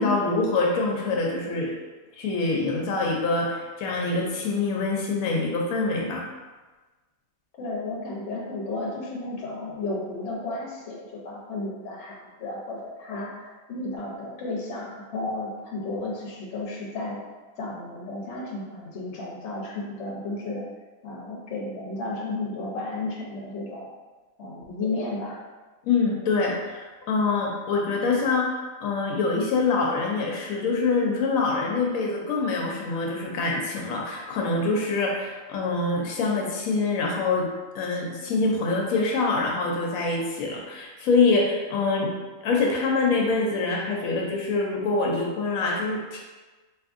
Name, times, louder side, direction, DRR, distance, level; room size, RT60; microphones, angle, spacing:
voice 1, 0.0-1.7 2.2-6.2 25.8-37.5 37.7-42.1 42.4-46.2, left 3 dB, 90° left, -1 dB, 1.0 m, -25 dB
voice 2, 7.6-17.2 17.6-20.6 21.0-23.9 24.4-25.4, left 2 dB, 60° left, -2 dB, 1.0 m, -33 dB
3.5 x 2.9 x 2.5 m, 1.3 s
omnidirectional pair, 1.4 m